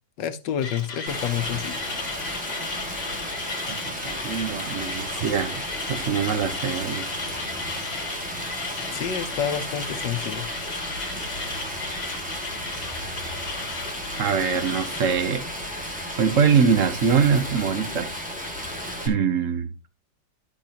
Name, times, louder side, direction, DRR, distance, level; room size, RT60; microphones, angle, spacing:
voice 1, 0.2-1.8 8.9-10.5, left 9 dB, 85° left, 1.6 m, -28 dB
Mechanisms, 0.6-15.2, left 4 dB, 65° left, 2.4 m, -36 dB
Stream, 1.1-19.1, equal, 5° right, 1.8 m, -33 dB
voice 2, 4.0-5.6 5.9-7.1 14.2-15.5 15.8-15.9 16.2-18.1 19.0-19.7, right 6 dB, 50° right, 1.3 m, -23 dB
12.0 x 6.2 x 2.9 m
omnidirectional pair, 1.9 m